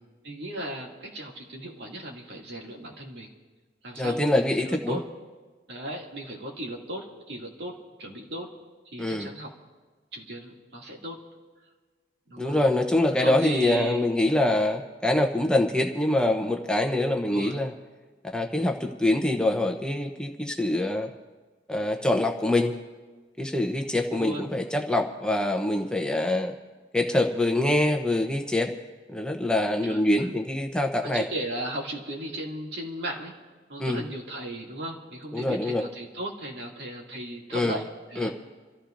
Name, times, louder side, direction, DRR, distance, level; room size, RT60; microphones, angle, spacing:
voice 1, 0.2-3.3 3.8-5.0 5.7-8.5 8.9-9.5 10.1-11.2 12.3-12.7 13.1-14.1 17.3-17.6 24.1-24.4 29.8-30.3 31.0-33.3 33.7-38.3, right 1 dB, 60° right, -1 dB, 2.4 m, -36 dB
voice 2, 4.0-5.0 9.0-9.3 12.4-17.7 18.3-21.1 21.7-22.8 23.4-26.5 26.9-28.7 29.1-31.2 33.8-34.0 35.3-35.8 37.5-37.8 38.2-38.3, left 1 dB, 5° left, 2 dB, 0.7 m, -25 dB
28.0 x 14.5 x 2.6 m, 1.4 s
head